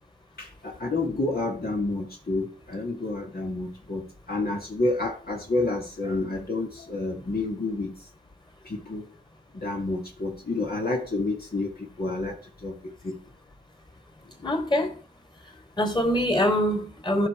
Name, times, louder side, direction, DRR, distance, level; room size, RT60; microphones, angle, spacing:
voice 1, 0.4-7.9 8.6-9.1 9.5-12.8 13.0-13.2 14.4-14.5, left 2 dB, 60° left, 2.3 m, -29 dB
voice 2, 14.4-15.0 15.8-17.3, equal, 25° left, 3.4 m, -24 dB
14.5 x 5.7 x 4.6 m
cardioid pair, 50°, 18 cm